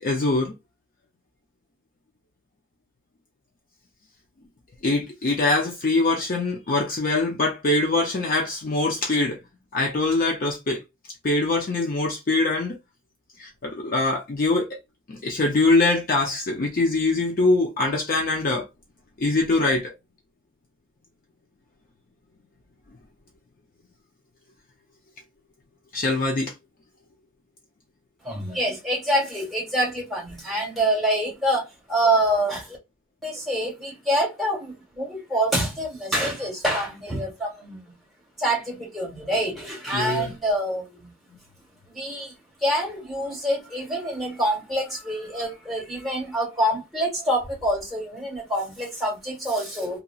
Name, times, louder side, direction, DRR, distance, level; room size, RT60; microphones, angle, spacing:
voice 1, 0.0-0.5 4.8-9.4 9.7-10.8 11.2-12.8 13.4-14.7 15.1-18.7 19.2-19.9 25.9-26.5 39.9-40.3, left 2 dB, 40° left, 0.4 m, -23 dB
voice 2, 28.2-32.8 33.2-37.8 38.4-41.1 41.9-42.3 42.6-50.0, right 1 dB, ahead, 1.5 m, -26 dB
2.8 x 2.8 x 2.3 m
head